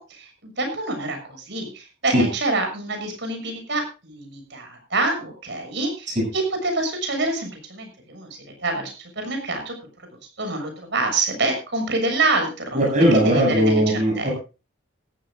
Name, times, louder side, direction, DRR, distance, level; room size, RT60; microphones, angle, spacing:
voice 1, 0.0-6.1 6.3-8.3 8.6-9.7 10.4-13.8 14.2-14.3, right 2 dB, 65° right, 5 dB, 6.7 m, -26 dB
voice 2, 12.7-14.3, equal, 40° right, 0 dB, 7.2 m, -18 dB
19.5 x 14.5 x 2.5 m, 0.31 s
head